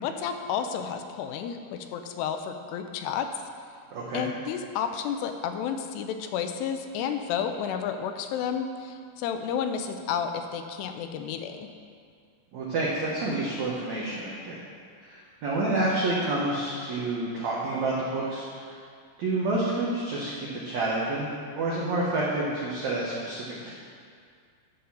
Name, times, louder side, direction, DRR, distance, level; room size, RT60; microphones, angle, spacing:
voice 1, 0.0-3.3 4.1-11.7, left 7 dB, 85° left, 7 dB, 2.7 m, -31 dB
voice 2, 3.9-4.3 12.5-14.6 15.0-18.8 19.2-21.3 21.5-23.7, right 2 dB, 80° right, -5 dB, 1.6 m, -29 dB
11.0 x 3.9 x 7.0 m, 2.2 s
omnidirectional pair, 4.7 m